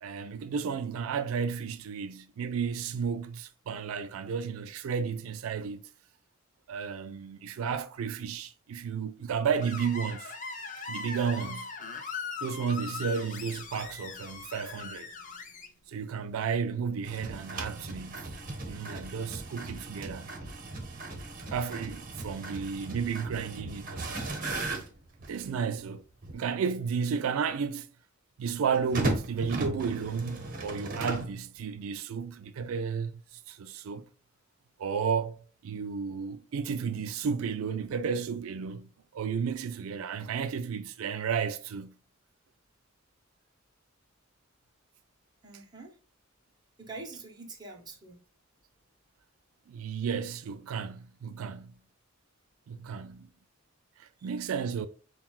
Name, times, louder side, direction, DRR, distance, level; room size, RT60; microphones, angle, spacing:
voice 1, 0.0-5.8 6.7-10.3 10.9-11.7 12.4-15.1 15.9-20.3 21.5-24.2 25.3-26.0 26.3-27.9 28.4-34.0 34.8-42.0 49.7-51.8 52.7-53.3 54.0-54.9, right 6 dB, 85° right, 0.4 m, -33 dB
Screech, 9.6-15.7, left 5 dB, 40° left, 0.6 m, -40 dB
sound 1, 14.4-20.1, left 1 dB, 85° left, 0.9 m, -63 dB
sound 2, 17.0-25.5 26.2-26.3 28.7-31.4, right 2 dB, 45° right, 0.9 m, -37 dB
voice 2, 45.4-46.0 46.8-48.2 54.2-54.3, right 3 dB, 20° right, 0.8 m, -45 dB
5.7 x 2.3 x 2.3 m
head